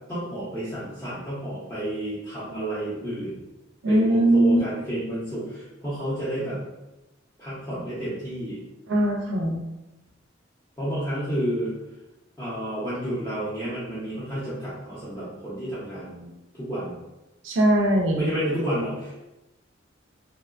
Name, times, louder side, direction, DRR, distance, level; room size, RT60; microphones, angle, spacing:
voice 1, 0.1-3.4 3.9-6.6 7.4-8.6 10.8-11.7 12.4-16.3 16.6-17.0 18.1-19.2, right 1 dB, 15° left, -12 dB, 0.6 m, -30 dB
voice 2, 3.8-4.6 8.9-9.6 17.4-18.3, right 1 dB, 70° right, 1 dB, 0.4 m, -20 dB
2.8 x 2.1 x 2.4 m, 0.97 s
head